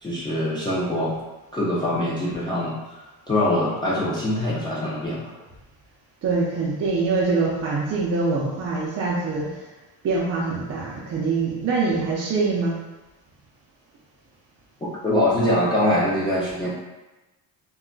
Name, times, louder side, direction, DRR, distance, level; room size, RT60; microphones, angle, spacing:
voice 1, 0.0-1.1 1.5-3.0 3.3-5.2 15.0-16.7, left 1 dB, 10° left, -9 dB, 0.5 m, -23 dB
voice 2, 6.2-9.6 10.0-12.8, right 3 dB, 40° right, -5 dB, 0.5 m, -24 dB
2.3 x 2.1 x 3.7 m, 1.1 s
cardioid pair, 135°, 40 cm